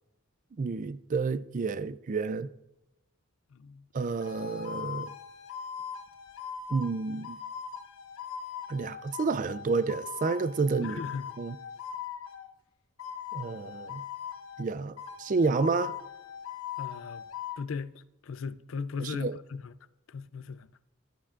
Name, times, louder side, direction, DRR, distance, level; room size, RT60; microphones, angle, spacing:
voice 1, 0.6-2.5 3.9-5.1 6.7-7.4 8.7-11.0 11.4-11.6 13.3-14.0 14.6-16.0 19.0-19.4, right 4 dB, 40° right, 0.3 m, -30 dB
voice 2, 3.5-3.8 10.8-11.3 16.8-17.2 17.6-19.7 20.1-20.7, left 5 dB, 70° left, 0.4 m, -37 dB
sound 1, 4.2-12.5 13.0-14.7 15.0-17.6, left 8 dB, 85° left, 1.0 m, -41 dB
13.0 x 12.0 x 2.5 m
head